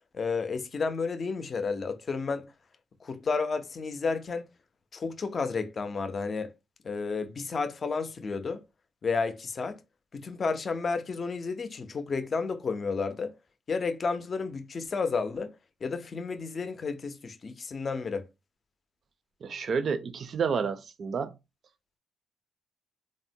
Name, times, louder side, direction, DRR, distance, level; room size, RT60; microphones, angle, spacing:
voice 1, 0.1-2.5 3.0-4.5 4.9-6.5 6.8-8.6 9.0-9.8 10.1-13.3 13.7-15.5 15.8-18.3, left 4 dB, 40° left, 0.5 m, -31 dB
voice 2, 19.4-21.3, right 6 dB, 50° right, 0.4 m, -30 dB
3.6 x 2.0 x 2.6 m
cardioid pair, 100°, 0 cm